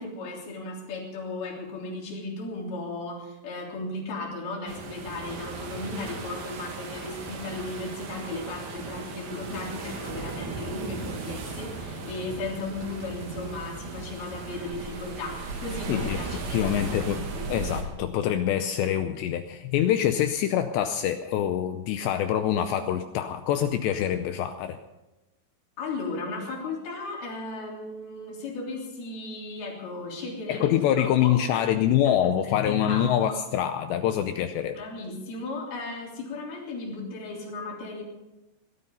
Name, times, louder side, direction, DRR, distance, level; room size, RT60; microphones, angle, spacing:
voice 1, 0.0-17.1 17.4-17.5 25.8-30.6 31.0-31.6 32.0-32.1 32.4-33.1 34.7-38.0, left 2 dB, 55° left, -2 dB, 5.1 m, -36 dB
sound 1, 4.7-17.8, right 4 dB, 80° right, 4.9 m, -37 dB
voice 2, 15.9-24.8 30.5-34.8, left 10 dB, 80° left, 8 dB, 2.6 m, -25 dB
19.0 x 13.0 x 5.5 m, 0.99 s
omnidirectional pair, 5.6 m